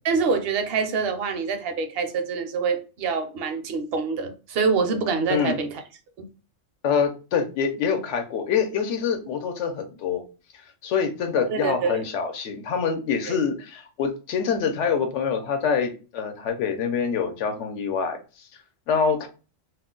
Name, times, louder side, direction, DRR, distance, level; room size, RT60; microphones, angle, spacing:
voice 1, 0.0-5.8 6.2-6.3 11.4-12.1 13.3-13.4, right 5 dB, 65° right, 0.7 m, -26 dB
voice 2, 6.8-10.2 10.8-18.2 18.9-19.3, left 6 dB, 75° left, 0.9 m, -25 dB
2.4 x 2.1 x 3.6 m
omnidirectional pair, 1.3 m